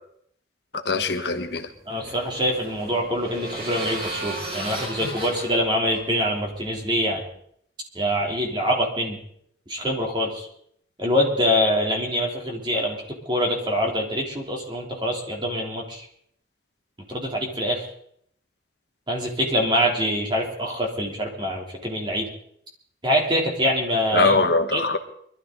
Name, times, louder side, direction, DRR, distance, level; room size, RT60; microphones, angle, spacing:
voice 1, 0.7-1.7 5.0-5.1 24.1-25.0, left 3 dB, 65° left, 6 dB, 1.4 m, -22 dB
sound 1, 1.4-6.9, right 2 dB, 55° right, 4.9 m, -35 dB
voice 2, 1.9-7.2 7.9-9.2 9.7-10.5 11.0-13.0 13.2-16.0 17.1-17.8 19.1-22.3 23.0-24.3 24.7-24.8, equal, 25° right, -1 dB, 3.3 m, -24 dB
23.5 x 13.0 x 4.0 m, 0.66 s
head